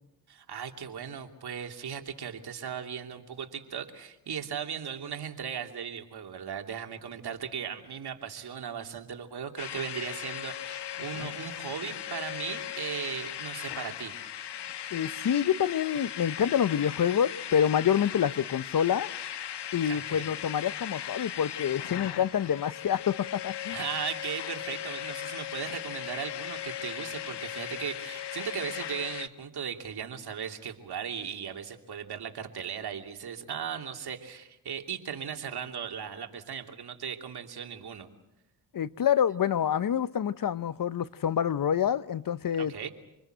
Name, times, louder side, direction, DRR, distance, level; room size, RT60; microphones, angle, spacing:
voice 1, 0.3-14.1 19.8-20.3 23.7-38.1 42.6-42.9, right 7 dB, 60° right, 2.9 m, -37 dB
sound 1, 9.6-29.3, left 11 dB, 65° left, 1.3 m, -38 dB
voice 2, 14.9-19.1 19.7-23.8 38.7-42.7, left 9 dB, 50° left, 0.9 m, -27 dB
27.0 x 21.0 x 7.9 m
supercardioid pair, 60°, 45 cm